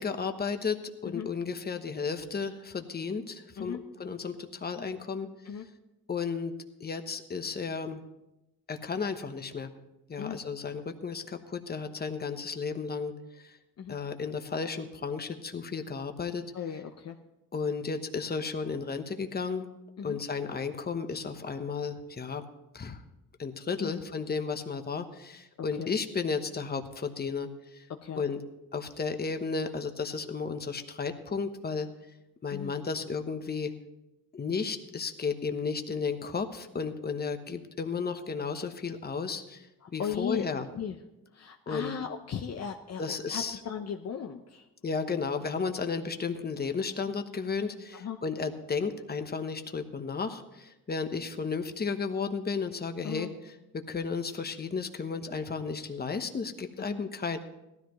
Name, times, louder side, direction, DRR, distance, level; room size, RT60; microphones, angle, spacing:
voice 1, 0.0-5.3 6.1-6.5 6.8-8.0 8.7-9.7 10.1-13.1 13.9-16.4 17.5-19.7 20.0-22.5 22.7-23.0 23.4-27.5 27.7-27.8 28.1-28.4 28.7-31.9 32.4-33.7 34.3-39.7 39.9-40.7 41.7-41.9 43.0-43.6 44.8-57.4, left 5 dB, 30° left, 7 dB, 1.1 m, -33 dB
voice 2, 16.5-17.2 20.0-20.2 23.8-24.0 25.8-25.9 28.0-28.2 32.5-32.7 39.8-40.5 40.7-41.0 41.3-44.6 47.9-48.2 53.0-53.3 56.8-57.0, left 7 dB, 50° left, 4 dB, 0.8 m, -36 dB
17.5 x 13.0 x 3.1 m, 0.95 s
cardioid pair, 105°, 34 cm